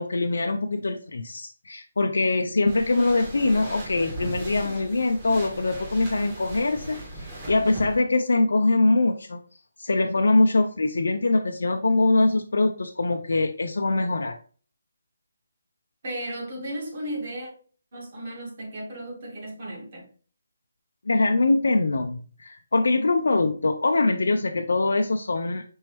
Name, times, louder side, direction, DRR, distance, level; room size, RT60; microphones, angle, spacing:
voice 1, 0.0-9.4 9.8-14.4 21.1-25.6, left 2 dB, 75° left, 0.4 m, -23 dB
sound 1, 2.7-8.0, right 1 dB, 25° right, 1.4 m, -38 dB
voice 2, 16.0-17.5 17.9-20.1, right 1 dB, 45° right, 1.9 m, -35 dB
5.3 x 2.9 x 3.2 m
figure-of-eight pair, 155°, 0 cm